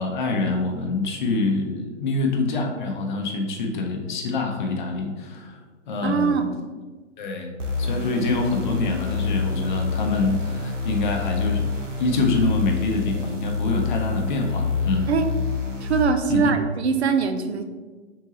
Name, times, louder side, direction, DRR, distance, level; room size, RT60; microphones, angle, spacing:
voice 1, 0.0-5.6 5.9-6.5 7.2-7.5 7.8-11.7 12.0-15.1 16.3-16.5, left 3 dB, 40° left, 2 dB, 0.7 m, -25 dB
voice 2, 6.0-6.5 15.1-15.3 15.8-17.6, right 5 dB, 60° right, 7 dB, 0.5 m, -22 dB
sound 1, 7.6-16.0, left 5 dB, 85° right, 0.9 m, -27 dB
4.5 x 3.7 x 2.9 m, 1.3 s
figure-of-eight pair, 125°, 36 cm